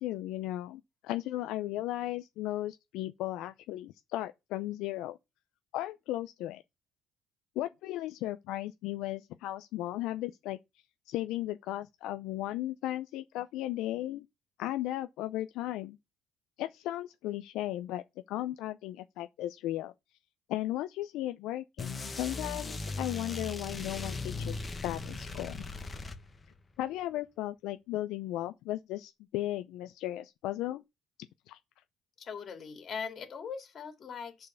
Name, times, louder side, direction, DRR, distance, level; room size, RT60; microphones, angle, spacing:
voice 1, 0.0-5.2 5.7-6.6 7.6-10.6 11.1-14.3 14.6-16.0 16.6-19.9 20.5-24.5 24.8-25.6 26.8-30.8 31.5-31.6, left 15 dB, 75° left, 0.5 m, -36 dB
sound 1, 21.8-26.6, left 3 dB, 20° left, 1.3 m, -38 dB
voice 2, 32.2-34.5, left 6 dB, 45° left, 2.7 m, -40 dB
8.3 x 4.6 x 6.9 m
cardioid pair, 95°, 0 cm